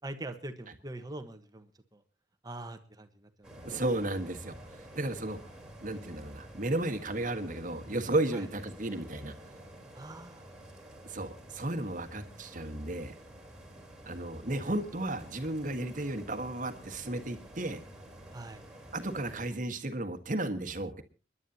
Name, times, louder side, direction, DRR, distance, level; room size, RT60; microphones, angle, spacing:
voice 1, 0.0-2.0 2.4-3.5 8.3-8.5 9.9-10.5 18.3-18.6, right 2 dB, 20° right, 8 dB, 1.3 m, -43 dB
sound 1, 3.4-19.4, right 1 dB, 5° right, 3.9 m, -51 dB
voice 2, 3.6-4.6 4.9-5.4 5.8-9.3 11.0-13.1 14.1-17.8 18.9-21.0, right 1 dB, 45° right, 8 dB, 1.5 m, -33 dB
30.0 x 11.0 x 2.8 m, 0.33 s
head